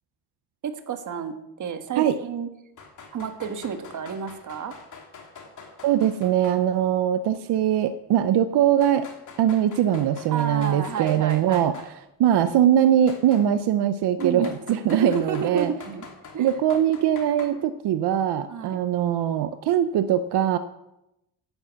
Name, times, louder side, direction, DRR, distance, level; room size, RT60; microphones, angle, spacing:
voice 1, 0.6-2.5 3.1-4.7 10.3-11.9 14.2-14.5 14.9-16.1 16.3-16.5 18.5-18.8, right 6 dB, 50° right, 8 dB, 1.5 m, -31 dB
sound 1, 2.8-6.6 6.9-7.0 7.9-8.0 8.8-11.9 13.1-13.5 14.2-17.5, left 5 dB, 50° left, 2.8 m, -45 dB
voice 2, 5.8-9.1 9.4-11.7 12.2-15.7 16.4-20.6, right 10 dB, 80° right, 11 dB, 0.8 m, -21 dB
11.5 x 10.0 x 8.1 m, 0.89 s
cardioid pair, 175°, 40 cm